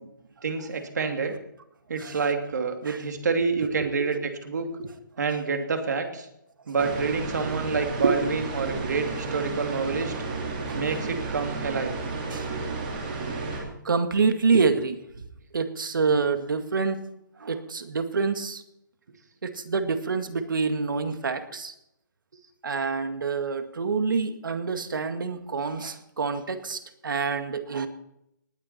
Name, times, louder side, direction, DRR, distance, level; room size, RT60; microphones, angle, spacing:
voice 1, 0.4-1.3 1.9-4.7 5.2-6.3 6.7-10.1 10.7-11.9, right 4 dB, 60° right, 5 dB, 2.7 m, -28 dB
sound 1, 6.8-13.6, right 3 dB, 25° right, 3.1 m, -32 dB
voice 2, 12.3-12.6 12.9-13.2 13.8-15.0 15.5-17.0 17.4-18.6 19.4-21.7 22.6-27.9, right 4 dB, 80° right, 8 dB, 2.0 m, -27 dB
19.5 x 8.9 x 4.4 m, 0.79 s
hypercardioid pair, 175°, 11 cm